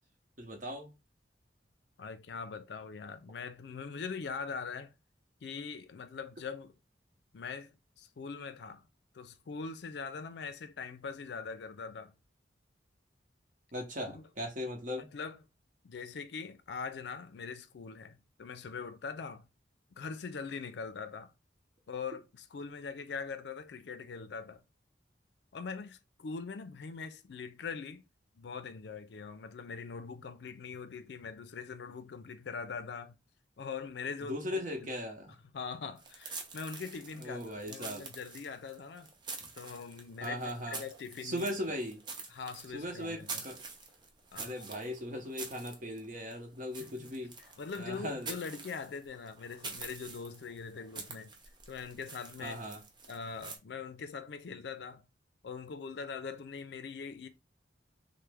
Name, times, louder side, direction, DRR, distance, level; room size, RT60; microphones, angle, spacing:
voice 1, 0.4-0.9 13.7-15.1 34.3-35.3 37.2-38.1 39.4-39.5 40.2-40.8 41.2-42.0 42.7-43.6 44.4-47.3 47.8-48.3 52.4-52.8, equal, 45° right, 0.8 m, -38 dB
voice 2, 2.0-4.9 5.4-6.7 7.3-8.8 9.1-12.1 14.1-14.2 14.9-15.4 15.8-19.5 20.0-21.3 21.9-24.6 25.5-28.0 28.3-33.2 33.6-35.0 35.5-39.1 39.6-40.4 40.7-41.5 42.3-43.4 44.3-44.5 46.8-47.1 47.6-51.3 51.7-52.6 53.1-55.0 55.4-57.3, left 5 dB, 70° left, 0.4 m, -42 dB
sound 1, 36.0-53.6, right 4 dB, 25° right, 0.5 m, -47 dB
3.1 x 2.1 x 3.4 m
head